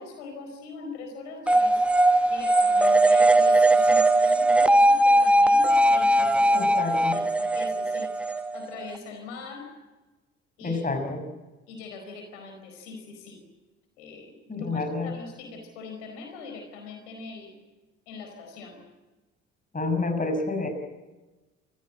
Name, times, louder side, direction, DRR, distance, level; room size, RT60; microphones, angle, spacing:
voice 1, 0.0-1.8 2.3-9.7 10.6-10.8 11.7-13.4 14.0-17.5 18.1-18.8, left 4 dB, 70° left, 4 dB, 4.6 m, -42 dB
sound 1, 1.5-9.0, right 1 dB, 5° right, 1.4 m, -20 dB
voice 2, 6.5-7.2 10.6-11.2 14.5-15.1 19.7-20.7, left 3 dB, 20° left, 6 dB, 6.1 m, -28 dB
27.5 x 15.5 x 8.8 m, 1.2 s
figure-of-eight pair, 50°, 36 cm